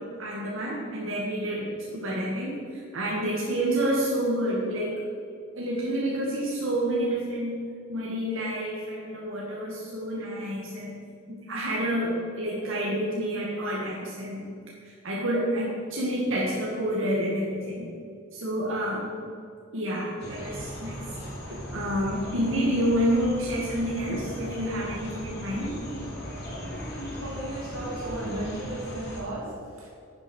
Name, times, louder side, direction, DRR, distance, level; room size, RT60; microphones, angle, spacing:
voice 1, 0.0-1.7 1.9-5.0 5.6-7.6 7.9-10.9 11.3-14.4 14.8-17.9 18.3-19.1 19.7-21.0 21.5-25.8, equal, 65° right, -5 dB, 2.0 m, -29 dB
sound 1, 20.2-29.2, equal, 50° left, 2.7 m, -38 dB
voice 2, 27.2-29.9, right 1 dB, 90° right, -2 dB, 2.8 m, -35 dB
10.0 x 7.6 x 6.3 m, 2.4 s
head